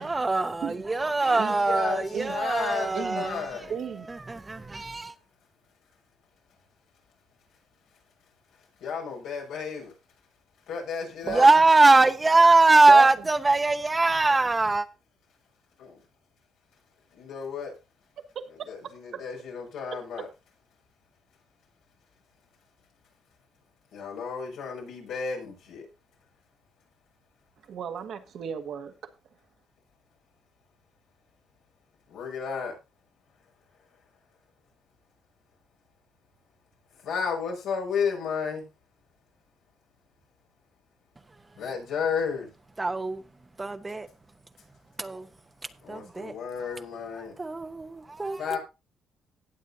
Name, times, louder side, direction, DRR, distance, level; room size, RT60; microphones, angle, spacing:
voice 1, 0.0-3.7 4.1-5.1 11.3-14.9 42.8-43.2 43.6-44.1 45.0-45.2 45.9-46.3 47.4-48.6, right 3 dB, 20° right, 0.9 m, -22 dB
voice 2, 1.2-3.7 8.8-9.9 10.7-11.5 15.8-16.0 17.1-17.7 18.6-20.3 23.9-25.9 32.1-32.7 37.0-38.7 41.6-42.5 45.8-47.3 48.4-48.6, left 6 dB, 90° left, 5.8 m, -33 dB
voice 3, 2.9-3.2 3.7-4.1 11.3-11.5 12.9-13.1 18.2-18.7 19.1-19.2 19.9-20.0 27.7-28.9, right 8 dB, 70° right, 1.6 m, -33 dB
18.0 x 7.4 x 2.8 m
cardioid pair, 90°, 0 cm